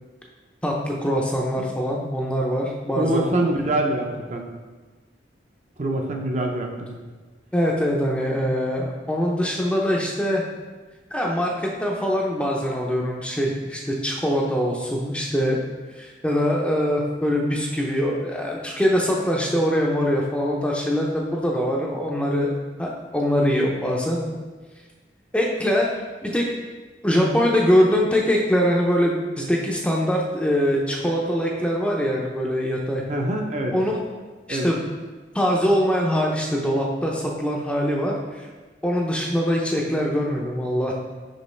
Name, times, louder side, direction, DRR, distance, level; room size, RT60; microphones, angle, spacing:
voice 1, 0.6-3.5 7.5-10.4 11.1-15.6 15.9-22.5 22.8-24.2 25.3-25.9 26.2-26.5 27.0-33.0 33.7-33.9 34.5-34.9 35.3-38.5 38.8-40.9, equal, 5° left, -1 dB, 0.5 m, -23 dB
voice 2, 3.0-4.4 5.8-7.0 33.1-33.7 34.5-34.7, right 1 dB, 40° right, 1 dB, 0.6 m, -25 dB
5.6 x 5.2 x 3.2 m, 1.3 s
head